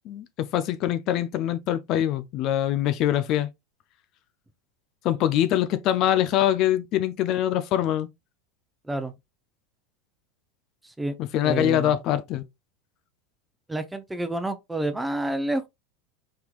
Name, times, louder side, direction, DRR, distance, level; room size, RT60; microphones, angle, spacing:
voice 1, 0.1-3.5 5.0-8.1 11.3-12.4, left 11 dB, 50° left, 0.5 m, -24 dB
voice 2, 11.4-12.0 13.7-15.7, right 1 dB, 10° right, 0.8 m, -29 dB
4.4 x 3.6 x 2.4 m
hypercardioid pair, 90°, 0 cm